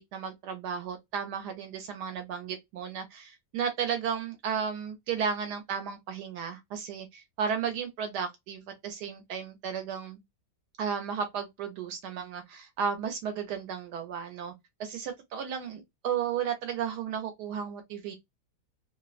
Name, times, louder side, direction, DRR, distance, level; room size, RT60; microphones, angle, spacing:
voice 1, 0.0-10.2 10.8-14.5 14.8-18.1, right 7 dB, 80° right, 1.2 m, -34 dB
2.9 x 2.0 x 2.3 m
omnidirectional pair, 1.8 m